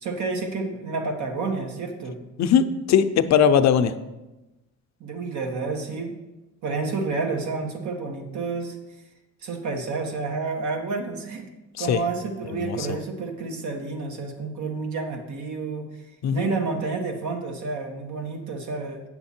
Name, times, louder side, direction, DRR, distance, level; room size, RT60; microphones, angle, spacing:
voice 1, 0.0-2.2 5.0-6.1 6.6-8.8 9.4-11.5 11.8-15.9 16.3-19.0, right 4 dB, 70° right, 3 dB, 1.5 m, -30 dB
voice 2, 2.4-3.9 11.8-12.0 12.6-12.8 16.2-16.5, left 8 dB, 65° left, 10 dB, 0.6 m, -19 dB
8.5 x 6.7 x 4.3 m, 1.0 s
cardioid pair, 90°, 30 cm